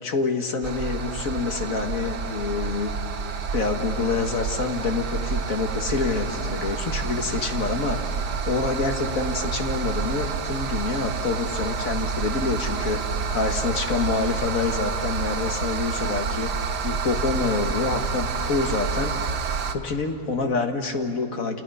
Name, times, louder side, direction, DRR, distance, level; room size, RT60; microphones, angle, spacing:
voice 1, 0.0-2.9 3.5-8.0 8.5-16.5 16.8-19.1 19.7-21.6, left 4 dB, 55° left, 5 dB, 1.9 m, -27 dB
sound 1, 0.6-19.7, right 5 dB, 90° right, 1.8 m, -29 dB
30.0 x 29.0 x 5.5 m, 2.6 s
omnidirectional pair, 1.7 m